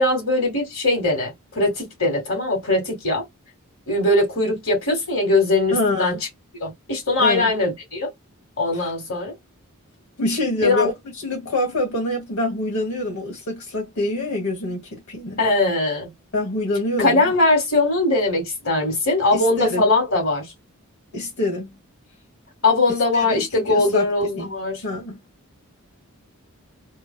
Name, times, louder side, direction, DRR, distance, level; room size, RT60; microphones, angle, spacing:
voice 1, 0.0-3.2 3.9-6.2 6.6-8.1 8.6-9.3 10.6-10.9 15.4-16.1 17.0-20.5 22.6-24.8, left 2 dB, 60° left, 1.7 m, -21 dB
voice 2, 5.7-6.2 7.2-7.5 8.7-8.9 10.2-10.9 11.2-15.4 16.3-17.3 19.3-19.8 21.1-21.8 23.1-24.5 24.8-25.2, left 1 dB, 80° left, 1.5 m, -25 dB
3.1 x 2.3 x 2.2 m
head